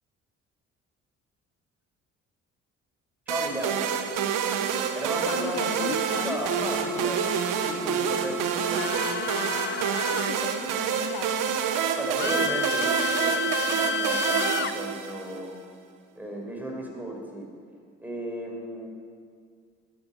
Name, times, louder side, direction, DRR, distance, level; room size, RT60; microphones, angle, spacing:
voice 1, 3.3-3.9 4.9-5.9 6.2-7.4 7.6-9.1 12.0-15.5 16.2-17.5 18.0-18.9, equal, 5° right, 0 dB, 5.2 m, -35 dB
sound 1, 3.3-15.5, right 7 dB, 75° right, 1.3 m, -27 dB
voice 2, 5.3-6.4 10.1-11.6, left 10 dB, 75° left, 10 dB, 0.8 m, -36 dB
sound 2, 8.7-10.4 12.2-14.7, left 7 dB, 35° left, 0.5 m, -30 dB
13.0 x 10.5 x 8.5 m, 2.1 s
supercardioid pair, 65°, 32 cm